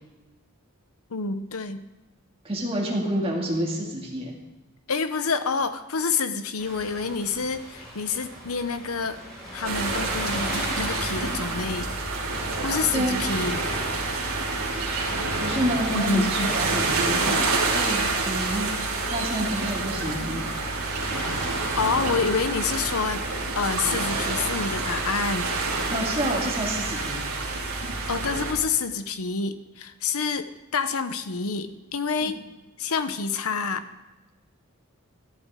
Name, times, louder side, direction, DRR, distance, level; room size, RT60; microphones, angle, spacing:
voice 1, 1.1-1.8 4.9-9.2 9.5-11.9 12.6-13.6 15.9-16.5 21.8-23.2 23.6-25.5 28.1-32.4 32.8-33.9, left 5 dB, 80° left, 10 dB, 0.9 m, -28 dB
voice 2, 2.5-4.3 12.9-13.2 15.4-17.3 17.7-18.7 19.1-20.4 25.9-27.2, right 1 dB, 25° right, -2 dB, 2.3 m, -28 dB
sound 1, 6.6-22.9, equal, ahead, 5.2 m, -40 dB
sound 2, 9.6-28.5, right 3 dB, 80° right, 3.0 m, -28 dB
13.5 x 11.5 x 3.7 m, 1.1 s
head